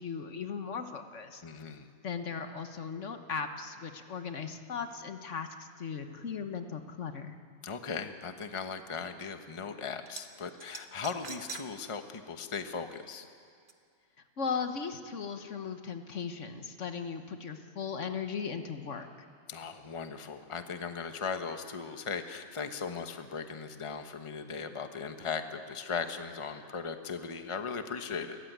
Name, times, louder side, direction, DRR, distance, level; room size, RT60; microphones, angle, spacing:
voice 1, 0.0-1.4 2.0-7.3 14.4-19.1, left 6 dB, 65° left, 7 dB, 1.5 m, -37 dB
voice 2, 1.4-1.9 7.6-13.3 19.5-28.4, left 5 dB, 25° left, 7 dB, 1.1 m, -38 dB
sound 1, 10.1-10.2 10.6-11.7 12.1-12.2 13.7-13.8, right 5 dB, 40° right, 1.3 m, -43 dB
29.5 x 14.5 x 9.4 m, 2.3 s
omnidirectional pair, 1.4 m